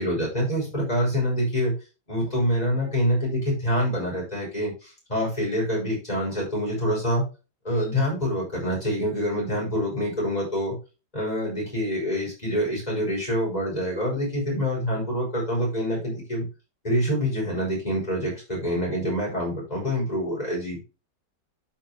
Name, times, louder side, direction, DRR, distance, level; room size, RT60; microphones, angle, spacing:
voice 1, 0.0-1.7 2.1-7.2 7.6-10.8 11.1-16.5 16.8-20.8, equal, 20° left, -4 dB, 5.8 m, -26 dB
12.0 x 5.7 x 2.9 m, 0.30 s
omnidirectional pair, 1.9 m